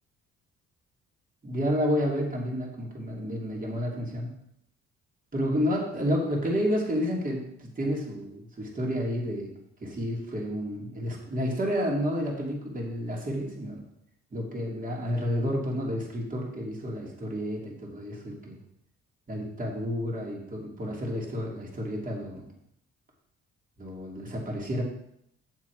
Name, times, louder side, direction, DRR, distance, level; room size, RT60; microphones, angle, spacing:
voice 1, 1.4-4.3 5.3-9.5 9.8-13.8 14.3-18.6 19.3-22.5 23.8-24.8, equal, 25° right, -2 dB, 3.0 m, -30 dB
7.5 x 7.3 x 4.8 m, 0.74 s
cardioid pair, 90°, 30 cm